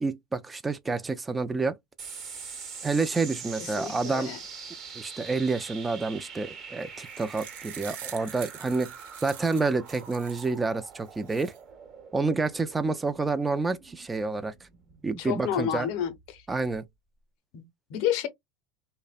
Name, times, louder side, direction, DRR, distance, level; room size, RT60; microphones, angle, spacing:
voice 1, 0.0-1.8 2.8-4.3 4.9-8.9 9.2-11.5 12.1-14.5 15.0-15.9 16.5-16.8, right 3 dB, 15° right, 0.3 m, -28 dB
sound 1, 2.0-16.8, right 6 dB, 45° right, 0.9 m, -44 dB
voice 2, 3.8-4.4 15.2-16.4 17.5-18.3, left 10 dB, 65° left, 0.6 m, -30 dB
sound 2, 6.8-10.6 11.1-11.6, right 11 dB, 75° right, 0.5 m, -45 dB
2.6 x 2.0 x 2.3 m
supercardioid pair, 105°, 0 cm